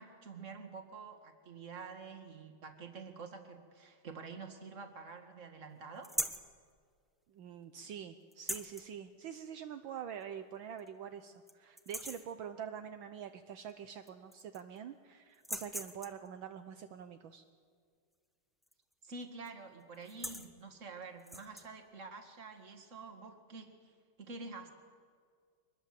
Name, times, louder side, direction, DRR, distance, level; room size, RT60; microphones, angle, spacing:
voice 1, 0.0-6.1 19.0-23.9 24.2-24.7, right 4 dB, 35° right, 6 dB, 2.3 m, -48 dB
sound 1, 6.0-6.5 8.3-8.9 10.2-10.3 10.8-10.9 11.3-11.5 11.8-12.3 13.7-13.8 14.1-14.8 15.3-16.3 18.6-18.9 19.2-19.5 19.9-20.5 21.2-21.7, equal, ahead, 0.7 m, -40 dB
voice 2, 7.3-17.4, right 8 dB, 70° right, 8 dB, 1.6 m, -45 dB
25.0 x 20.5 x 7.7 m, 2.1 s
omnidirectional pair, 2.3 m